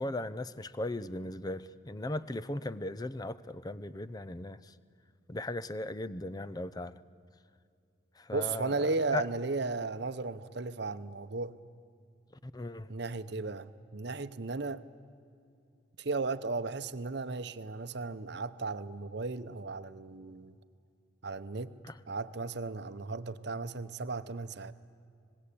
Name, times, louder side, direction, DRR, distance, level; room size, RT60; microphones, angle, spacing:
voice 1, 0.0-4.7 5.3-7.0 8.2-8.8 9.1-9.2 12.4-12.9 21.8-21.9, left 2 dB, 20° left, 0.5 m, -37 dB
voice 2, 8.3-11.6 12.9-14.8 16.0-20.5 21.2-21.8 22.1-24.7, right 3 dB, 60° right, 0.8 m, -35 dB
25.5 x 20.5 x 8.5 m
head